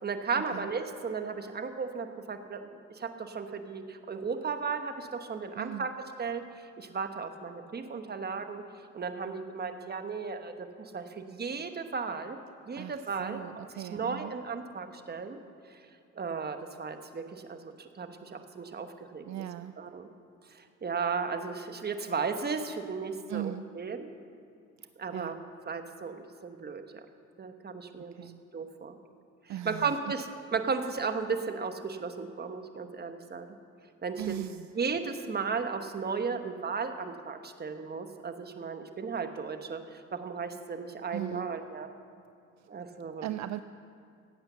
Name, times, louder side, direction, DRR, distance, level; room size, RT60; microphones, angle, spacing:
voice 1, 0.0-2.7 2.9-5.9 6.2-8.6 8.9-12.4 12.7-15.4 15.7-15.8 16.1-19.4 19.8-20.1 20.5-24.1 25.0-25.4 25.7-26.8 27.4-28.1 28.5-29.0 29.6-33.5 34.0-34.4 34.8-41.9 42.7-43.2, right 5 dB, 35° right, 7 dB, 1.1 m, -35 dB
voice 2, 5.6-5.9 12.8-14.4 19.3-19.7 23.3-23.7 24.8-25.3 28.1-28.4 29.5-30.0 34.2-34.7 41.1-41.5 42.6-42.7 43.2-43.6, right 12 dB, 65° right, 11 dB, 0.5 m, -39 dB
15.5 x 8.9 x 6.9 m, 2.5 s
cardioid pair, 90°, 30 cm